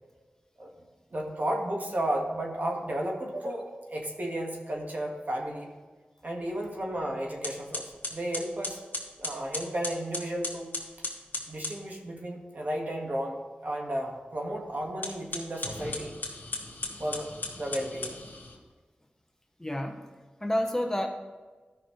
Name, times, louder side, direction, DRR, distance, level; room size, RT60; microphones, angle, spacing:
voice 1, 1.1-5.7 6.2-8.8 9.2-10.7 11.5-16.1 17.0-17.3 17.6-18.2, right 1 dB, 55° right, 0 dB, 1.7 m, -33 dB
sound 1, 6.9-7.0 7.4-11.8 14.9-18.6, left 2 dB, 60° left, 1.7 m, -37 dB
voice 2, 19.6-20.1 20.4-21.1, equal, 15° left, 3 dB, 0.9 m, -29 dB
13.0 x 5.8 x 3.2 m, 1.3 s
cardioid pair, 50°, 4 cm